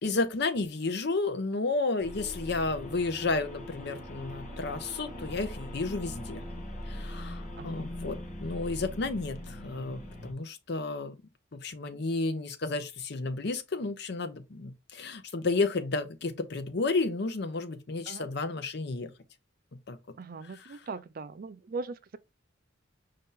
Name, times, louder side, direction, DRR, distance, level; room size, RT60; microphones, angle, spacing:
voice 1, 0.0-6.4 6.9-11.2 11.5-19.1 19.9-20.0 20.4-20.8, left 3 dB, 60° left, 0.7 m, -32 dB
sound 1, 2.0-10.3, left 1 dB, 40° left, 1.0 m, -41 dB
voice 2, 7.6-7.9 18.1-18.3 20.2-22.2, right 4 dB, 45° right, 0.4 m, -40 dB
5.1 x 2.8 x 3.6 m
head